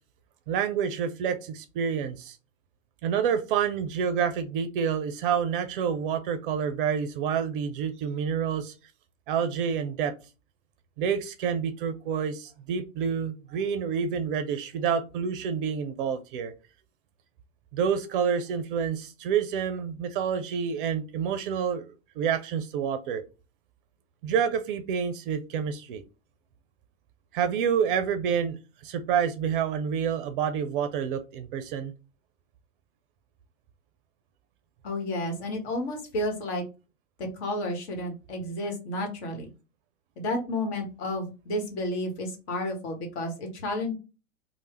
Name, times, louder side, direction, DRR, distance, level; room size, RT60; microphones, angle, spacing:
voice 1, 0.5-2.4 3.0-8.7 9.3-10.1 11.0-16.5 17.7-23.2 24.2-26.0 27.3-31.9, right 7 dB, 40° right, 8 dB, 0.5 m, -28 dB
voice 2, 34.8-36.6 37.2-39.5 40.2-43.9, left 1 dB, 55° left, 3 dB, 1.3 m, -31 dB
3.2 x 2.1 x 3.1 m, 0.30 s
figure-of-eight pair, 95°, 40 cm